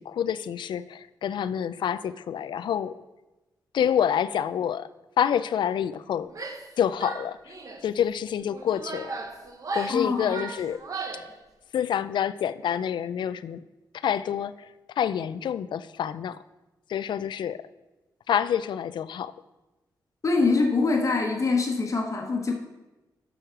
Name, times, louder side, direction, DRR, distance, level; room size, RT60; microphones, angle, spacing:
voice 1, 0.0-3.0 3.7-4.9 5.2-6.3 6.8-7.5 7.8-9.1 9.7-10.8 11.7-13.6 14.0-14.5 15.0-16.4 16.9-17.6 18.3-19.3, left 9 dB, 85° left, 15 dB, 0.4 m, -27 dB
Female speech woman speaking / Yell, 6.3-6.7 7.0-7.9 8.5-11.3, right 3 dB, 50° right, 1.0 m, -36 dB
voice 2, 9.9-10.4 20.2-22.5, left 3 dB, 45° left, 2 dB, 1.2 m, -24 dB
7.9 x 6.3 x 5.8 m, 1.1 s
wide cardioid pair, 105°, 8 cm